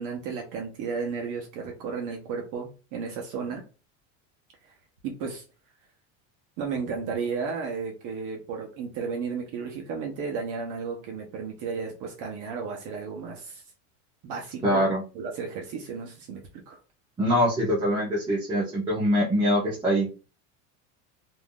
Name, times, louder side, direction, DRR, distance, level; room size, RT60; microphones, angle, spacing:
voice 1, 0.0-3.6 5.0-5.4 6.6-13.6 14.2-14.9 15.1-16.8, right 5 dB, 50° right, 1 dB, 0.8 m, -33 dB
voice 2, 14.6-15.0 17.2-20.1, equal, 10° right, -6 dB, 0.8 m, -23 dB
3.3 x 2.6 x 2.2 m, 0.34 s
supercardioid pair, 140°, 41 cm